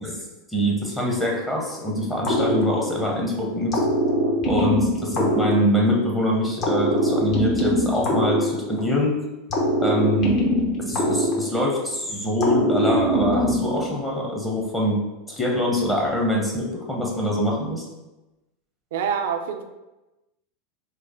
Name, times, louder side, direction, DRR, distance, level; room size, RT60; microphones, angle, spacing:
voice 1, 0.0-3.8 4.5-9.2 9.8-10.4 10.9-15.0 15.3-17.9, left 1 dB, 10° left, -3 dB, 0.8 m, -24 dB
sound 1, 2.2-3.2 3.7-6.1 6.6-9.0 9.5-11.9 12.4-13.9, equal, 45° left, 0.9 m, -22 dB
voice 2, 18.9-19.6, right 7 dB, 70° right, 6 dB, 0.4 m, -26 dB
3.1 x 2.0 x 3.7 m, 1.0 s
hypercardioid pair, 90°, 0 cm